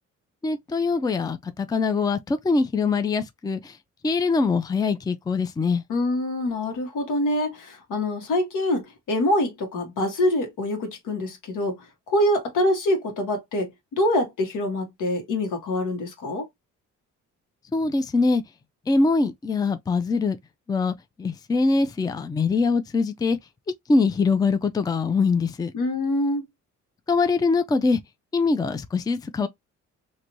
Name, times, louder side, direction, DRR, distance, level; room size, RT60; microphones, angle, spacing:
voice 1, 0.4-3.7 4.0-5.8 17.7-18.4 18.9-20.4 20.7-23.4 23.9-25.7 27.1-28.0 28.3-29.5, left 4 dB, 15° left, 0.4 m, -23 dB
voice 2, 5.9-16.5 25.7-26.4, left 1 dB, 85° left, 1.3 m, -25 dB
3.0 x 2.6 x 2.6 m
cardioid pair, 90°, 30 cm